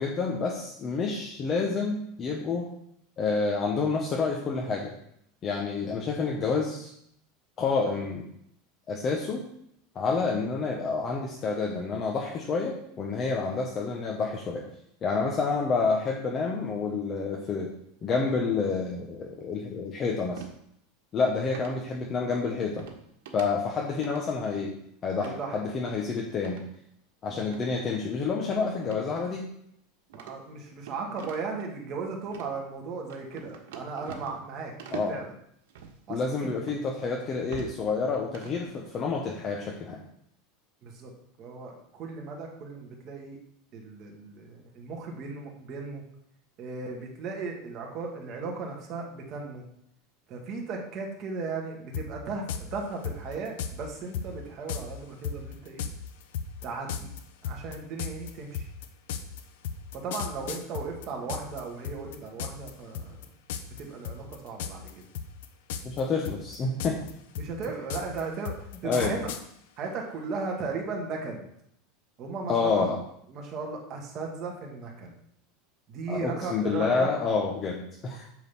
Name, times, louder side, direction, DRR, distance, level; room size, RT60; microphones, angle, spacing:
voice 1, 0.0-2.7 3.2-4.9 5.4-6.9 7.6-8.3 8.9-9.4 9.9-14.6 15.0-17.7 18.0-20.4 21.1-22.8 23.3-24.7 25.0-26.6 27.2-29.5 34.9-35.1 36.1-40.0 65.8-67.0 68.8-69.1 72.5-73.0 76.1-78.3, left 4 dB, 25° left, -1 dB, 1.0 m, -28 dB
Footsteps - Wood Deck Sneakers, 20.4-20.6 21.5-21.8 22.8-23.0 23.2-23.5 23.8-24.2 25.2-25.4 26.4-26.7 27.5-27.6 28.8-29.1 29.4-29.5 30.1-31.6 32.2-32.5 33.1-34.5 34.8-35.2 35.7-35.9 36.7-36.8 37.3-37.8 38.1-38.6, right 6 dB, 90° right, 1.4 m, -43 dB
voice 2, 25.2-25.7 27.3-27.6 30.1-34.7 35.1-35.3 36.1-36.4 40.8-41.1 41.4-43.4 43.7-46.0 46.6-49.7 50.3-55.8 56.6-57.1 57.4-58.7 59.9-63.3 63.7-65.1 67.4-68.6 68.8-69.3 69.8-71.5 72.2-72.9 73.3-75.1 75.9-77.1, right 4 dB, 30° right, 0 dB, 1.8 m, -36 dB
sound 1, 51.9-52.1 52.5-52.6 53.0-53.7 54.1-54.3 54.7-54.8 55.2-61.6 61.8-62.7 62.9-63.2 63.5-64.9 65.1-66.0 66.2-69.4, left 8 dB, 75° left, 0.9 m, -34 dB
9.2 x 4.0 x 7.0 m, 0.72 s
supercardioid pair, 170°, 0 cm